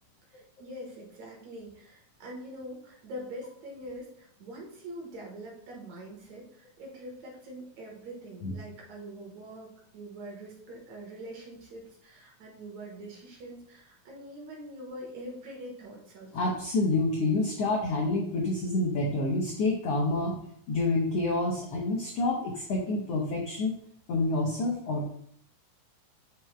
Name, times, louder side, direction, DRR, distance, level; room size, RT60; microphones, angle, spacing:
voice 1, 0.3-16.3, right 1 dB, 60° right, -2 dB, 2.4 m, -44 dB
voice 2, 16.3-20.4 20.7-23.7 24.1-25.1, left 2 dB, 85° left, -1 dB, 1.4 m, -28 dB
7.6 x 6.6 x 2.2 m, 0.65 s
omnidirectional pair, 4.0 m